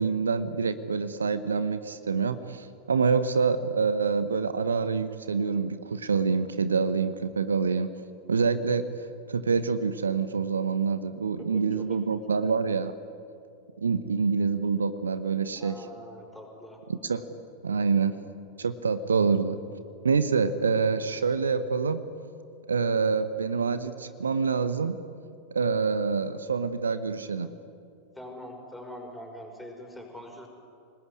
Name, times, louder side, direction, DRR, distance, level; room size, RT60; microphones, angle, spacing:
voice 1, 0.0-7.9 8.3-8.8 9.3-12.9 13.8-15.7 16.9-17.2 17.6-18.2 18.6-19.6 20.0-22.0 22.7-25.0 25.5-27.5, right 5 dB, 70° right, 12 dB, 1.0 m, -26 dB
voice 2, 11.5-12.0 15.6-16.8 28.1-30.5, left 1 dB, 5° left, 1 dB, 5.7 m, -43 dB
27.5 x 19.5 x 9.7 m, 2.5 s
figure-of-eight pair, 90°, 0 cm